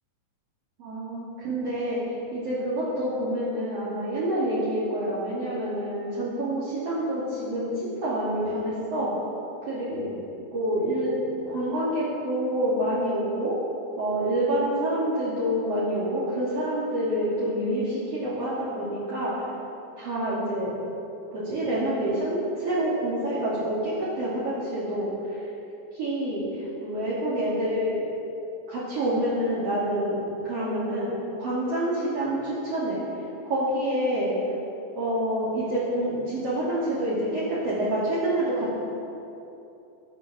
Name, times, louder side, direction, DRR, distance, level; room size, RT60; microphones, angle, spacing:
voice 1, 0.8-2.0 2.3-9.1 9.7-10.2 10.5-11.1 11.5-13.5 14.0-19.5 20.0-20.7 21.3-25.5 25.9-28.0 28.7-30.2 30.4-33.0 33.4-34.4 35.0-38.7, right 1 dB, 45° right, -10 dB, 3.6 m, -27 dB
23.5 x 8.1 x 6.0 m, 2.9 s
omnidirectional pair, 4.2 m